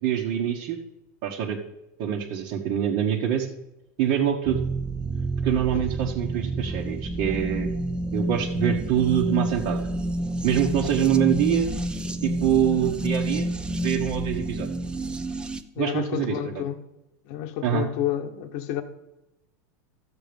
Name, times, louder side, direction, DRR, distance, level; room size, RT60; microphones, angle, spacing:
voice 1, 0.0-0.8 1.2-1.6 2.0-3.5 4.0-4.6 5.4-7.7 8.1-9.9 10.4-11.7 12.2-13.5 13.8-14.7 15.8-16.4 17.6-17.9, right 9 dB, 55° right, 1.4 m, -25 dB
sound 1, 4.5-15.6, right 1 dB, 10° right, 0.7 m, -29 dB
voice 2, 15.8-16.8 17.2-18.8, left 11 dB, 55° left, 1.1 m, -30 dB
13.0 x 7.6 x 5.3 m
supercardioid pair, 130°, 9 cm